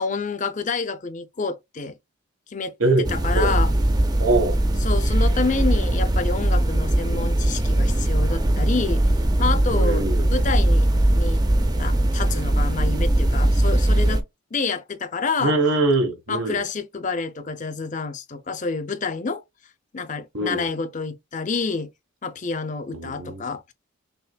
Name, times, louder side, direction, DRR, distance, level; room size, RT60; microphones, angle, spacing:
voice 1, 0.0-2.0 2.5-2.7 3.1-3.7 4.8-9.0 9.4-11.4 11.8-14.2 14.5-15.6 16.3-19.4 19.9-21.9 22.2-23.7, left 4 dB, 35° left, 0.5 m, -28 dB
sound 1, 3.0-14.2, right 1 dB, 20° right, 0.4 m, -20 dB
voice 2, 4.2-4.6 9.7-10.3 15.4-16.6 20.3-20.7 22.9-23.4, right 2 dB, 80° right, 1.3 m, -22 dB
5.7 x 3.0 x 2.2 m
head